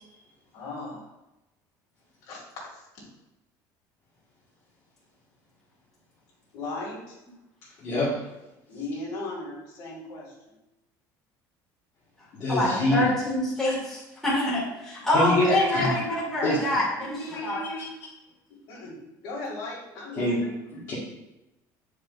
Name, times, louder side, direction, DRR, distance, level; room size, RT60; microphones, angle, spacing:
voice 1, 0.5-1.1 2.2-2.4 2.7-2.8 6.5-7.2 8.7-10.5 15.0-15.1 15.9-16.2 16.8-17.9 18.5-20.5, left 2 dB, 60° left, -4 dB, 2.3 m, -37 dB
voice 2, 7.8-8.2 12.3-13.1 15.1-15.9 16.4-16.6 20.2-20.4 20.7-20.9, left 1 dB, 40° left, -9 dB, 1.6 m, -25 dB
voice 3, 12.5-17.6, left 1 dB, 5° left, -8 dB, 2.1 m, -26 dB
8.5 x 5.0 x 2.5 m, 0.96 s
cardioid pair, 180°, 8 cm